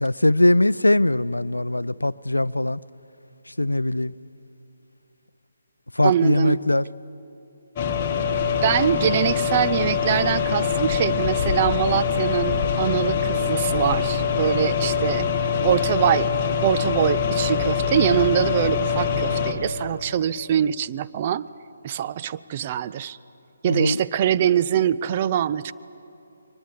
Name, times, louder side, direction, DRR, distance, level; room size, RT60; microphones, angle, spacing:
voice 1, 0.0-2.8 3.6-4.1 6.0-6.8 23.7-24.0, left 1 dB, 80° left, 0.4 m, -21 dB
voice 2, 6.0-6.6 8.6-16.3 16.6-21.5 21.8-23.2 23.6-25.7, right 10 dB, 30° right, 0.5 m, -23 dB
sound 1, 7.8-19.5, left 6 dB, 25° left, 1.8 m, -23 dB
23.0 x 20.5 x 8.3 m
figure-of-eight pair, 140°, 0 cm